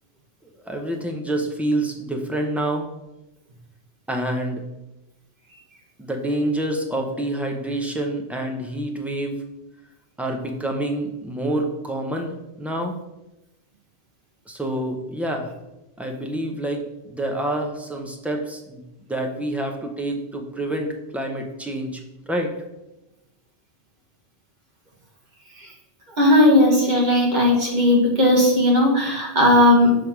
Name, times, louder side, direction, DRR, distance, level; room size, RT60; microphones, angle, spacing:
voice 1, 0.7-2.9 4.1-4.7 6.0-9.3 10.2-12.9 14.5-15.5 16.0-18.8 19.1-22.0 22.3-22.5, right 1 dB, ahead, 2 dB, 0.5 m, -27 dB
voice 2, 26.2-30.0, left 1 dB, 40° right, -1 dB, 1.5 m, -16 dB
6.1 x 3.4 x 5.9 m, 0.96 s
omnidirectional pair, 1.2 m